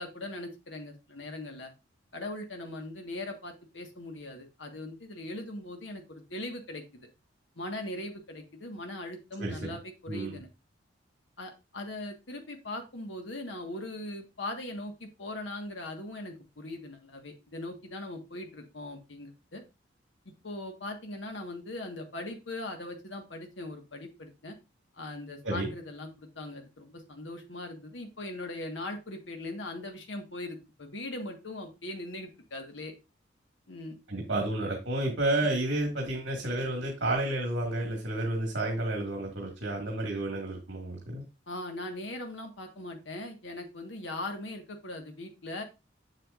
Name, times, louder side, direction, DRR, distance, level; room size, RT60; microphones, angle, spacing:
voice 1, 0.0-1.7 2.1-7.1 7.5-10.5 11.4-19.6 20.4-24.6 24.9-32.9 33.7-34.0 41.5-45.6, left 1 dB, 80° left, 1.5 m, -40 dB
voice 2, 9.4-9.8 10.1-10.4 25.4-25.7 34.1-41.2, right 1 dB, 70° right, 1.8 m, -31 dB
7.7 x 7.4 x 2.5 m
head